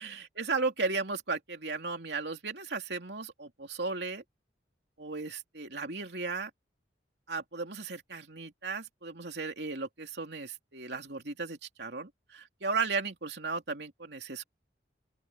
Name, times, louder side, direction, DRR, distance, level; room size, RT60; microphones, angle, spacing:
voice 1, 0.0-4.2 5.0-6.5 7.3-14.4, right 4 dB, 65° right, 3.2 m, -35 dB
open air
head